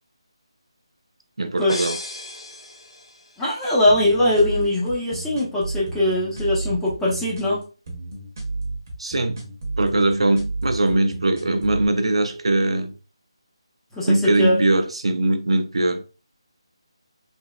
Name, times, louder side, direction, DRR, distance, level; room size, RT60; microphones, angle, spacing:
voice 1, 1.4-2.0 9.0-9.5 9.8-12.9 14.0-16.0, right 2 dB, 80° right, 0.5 m, -21 dB
sound 1, 1.7-3.5, left 2 dB, 75° left, 0.7 m, -34 dB
voice 2, 3.4-7.6 13.9-14.6, left 1 dB, 5° left, 0.5 m, -21 dB
sound 2, 3.9-11.9, right 3 dB, 35° right, 0.8 m, -32 dB
3.3 x 2.0 x 2.2 m
figure-of-eight pair, 170°, 3 cm